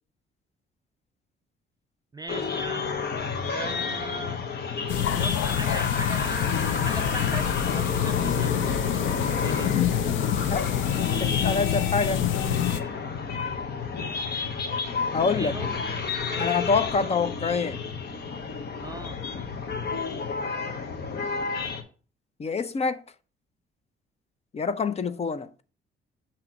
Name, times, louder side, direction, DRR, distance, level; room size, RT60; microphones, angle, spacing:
voice 1, 2.1-2.9 3.5-4.4 5.1-9.8 15.4-15.8 16.3-16.7 18.8-19.2, right 3 dB, 20° right, 0.3 m, -39 dB
sound 1, 2.3-21.8, left 5 dB, 55° left, 1.1 m, -31 dB
sound 2, 4.9-12.8, left 10 dB, 75° left, 0.6 m, -26 dB
voice 2, 10.9-12.2 15.1-15.5 16.4-17.8 22.4-23.0 24.5-25.5, left 4 dB, 30° left, 0.6 m, -26 dB
7.3 x 3.0 x 5.9 m
cardioid pair, 90°, 20 cm